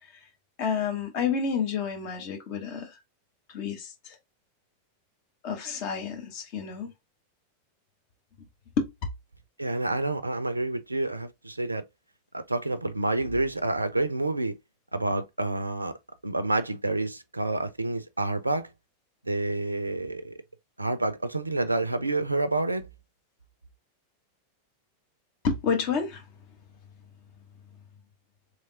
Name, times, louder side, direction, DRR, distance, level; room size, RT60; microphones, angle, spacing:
voice 1, 0.6-2.9 3.5-4.1 5.4-6.9 8.8-8.9 25.4-26.2, left 6 dB, 45° left, 1.0 m, -29 dB
voice 2, 9.6-11.8 12.3-14.6 14.9-15.9 16.2-18.7 19.2-20.3 20.8-22.9, right 2 dB, 85° right, 0.4 m, -28 dB
3.4 x 3.0 x 2.7 m
figure-of-eight pair, 90°, 0 cm